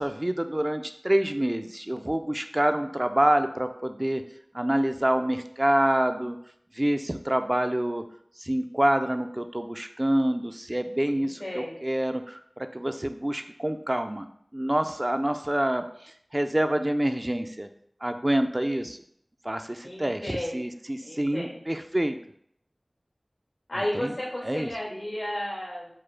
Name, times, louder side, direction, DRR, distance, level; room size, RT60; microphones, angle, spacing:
voice 1, 0.0-4.2 4.5-6.4 6.7-8.0 8.4-14.3 14.5-17.7 18.0-19.0 19.4-22.2 23.9-24.1 24.4-24.7, right 1 dB, 30° right, 8 dB, 0.3 m, -27 dB
voice 2, 11.1-11.8 19.8-20.6 21.0-21.6 23.7-25.9, left 1 dB, 75° left, -4 dB, 1.5 m, -33 dB
4.8 x 2.0 x 4.5 m, 0.68 s
wide cardioid pair, 40°, 0 cm